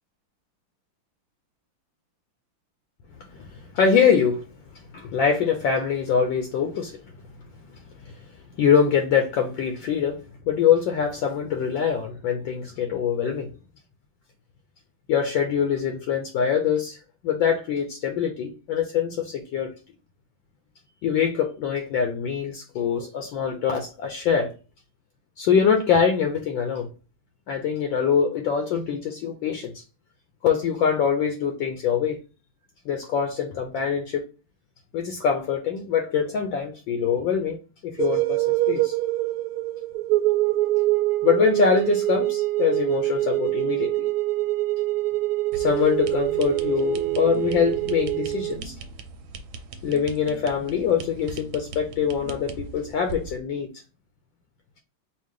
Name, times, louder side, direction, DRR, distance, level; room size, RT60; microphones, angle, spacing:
voice 1, 3.3-4.4 4.9-7.0 8.0-8.1 8.6-13.5 15.1-17.0 17.2-19.7 21.0-24.5 25.4-26.9 27.5-29.8 30.4-32.2 32.9-34.2 34.9-37.6 37.8-39.0 41.2-44.1 45.5-48.7 49.8-53.7, left 7 dB, 70° left, 1.3 m, -24 dB
sound 1, 38.0-48.6, right 18 dB, 90° right, 1.5 m, -24 dB
sound 2, 45.5-53.4, right 3 dB, 75° right, 1.4 m, -40 dB
4.5 x 2.5 x 3.6 m
omnidirectional pair, 2.4 m